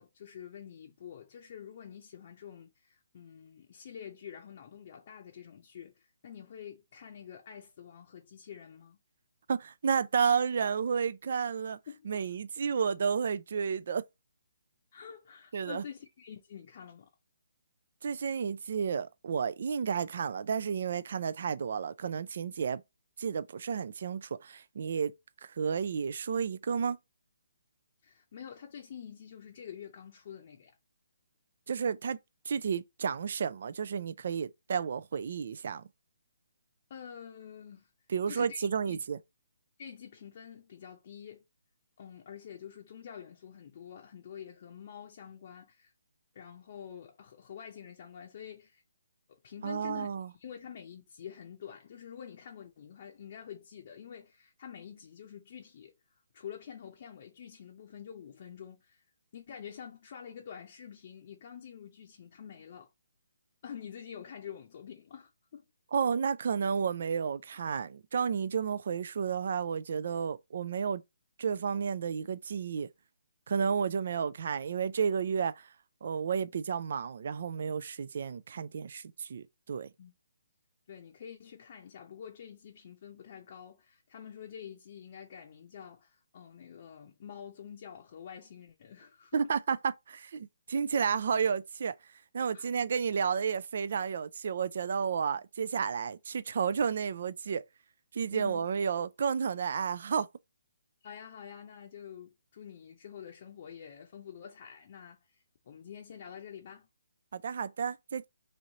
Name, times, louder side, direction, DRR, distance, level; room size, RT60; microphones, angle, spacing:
voice 1, 0.0-9.0 11.9-12.3 14.9-17.1 28.0-30.7 36.9-37.9 38.3-39.0 39.8-41.4 42.0-45.9 46.3-48.8 49.3-55.9 56.3-59.0 59.3-62.9 63.6-65.6 73.6-74.0 80.0-80.1 80.9-89.5 92.5-92.7 98.3-98.7 101.0-106.9, left 8 dB, 45° left, 0.7 m, -47 dB
voice 2, 9.5-11.8 12.1-14.0 15.5-15.8 18.0-22.8 23.2-25.1 25.5-27.0 31.7-32.2 32.5-35.8 38.1-39.2 49.6-50.3 65.9-71.0 71.4-72.9 73.5-75.7 76.0-79.9 89.3-91.9 92.3-97.6 98.1-100.3 107.3-108.3, right 6 dB, 55° right, 0.3 m, -31 dB
3.1 x 2.7 x 4.0 m
hypercardioid pair, 160°, 0 cm